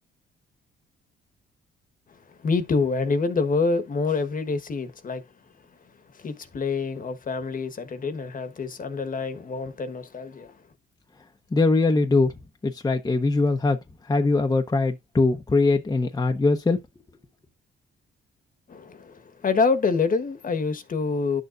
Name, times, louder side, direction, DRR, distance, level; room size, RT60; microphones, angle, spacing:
voice 1, 2.3-5.2 6.1-10.6 18.7-21.4, left 4 dB, 45° left, 1.4 m, -26 dB
voice 2, 11.5-12.3 12.6-13.8 14.1-16.8, left 3 dB, 20° left, 1.0 m, -21 dB
11.0 x 6.7 x 2.6 m
cardioid pair, 90°, 20 cm